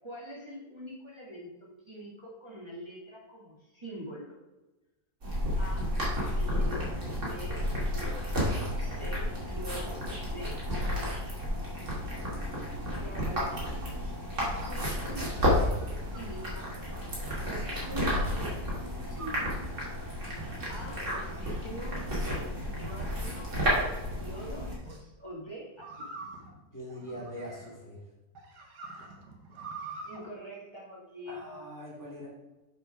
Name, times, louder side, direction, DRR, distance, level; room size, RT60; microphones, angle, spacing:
voice 1, 0.0-4.4 5.6-11.1 13.0-13.6 14.4-16.7 17.4-19.5 20.7-26.1 30.0-31.5, equal, 15° right, -6 dB, 2.0 m, -44 dB
sound 1, 5.2-24.7, equal, 50° right, 3.0 m, -32 dB
sound 2, 15.7-17.1 18.1-18.4 19.1-19.6 20.4-20.9 21.5-22.1 22.8-23.6 24.7-25.0 25.8-27.9 28.3-30.2, right 3 dB, 80° right, 2.0 m, -46 dB
voice 2, 26.7-28.0 31.3-32.3, equal, 10° left, -4 dB, 2.1 m, -42 dB
7.7 x 6.1 x 4.9 m, 1.1 s
omnidirectional pair, 1.7 m